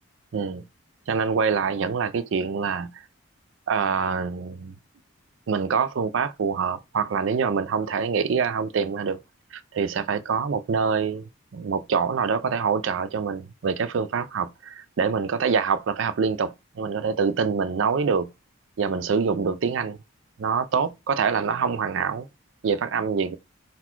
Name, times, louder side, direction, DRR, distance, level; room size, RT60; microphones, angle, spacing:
voice 1, 0.3-0.6 1.1-2.9 3.7-4.8 5.5-9.2 9.5-18.3 18.8-20.0 20.4-22.3 22.6-23.4, right 5 dB, 60° right, 0.4 m, -25 dB
3.9 x 2.3 x 4.4 m
head